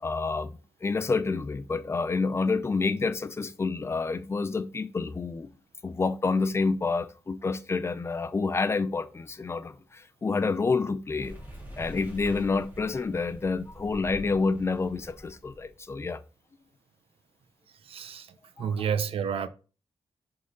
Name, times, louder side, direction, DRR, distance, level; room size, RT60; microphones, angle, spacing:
voice 1, 0.0-5.5 5.8-11.4 11.8-16.2 18.6-18.7, left 4 dB, 25° left, 0.6 m, -28 dB
sound 1, 11.2-15.7, equal, 20° right, 3.0 m, -45 dB
voice 2, 17.8-18.3 18.6-19.5, right 7 dB, 75° right, 0.7 m, -30 dB
11.0 x 3.9 x 4.0 m
wide cardioid pair, 140°, 10 cm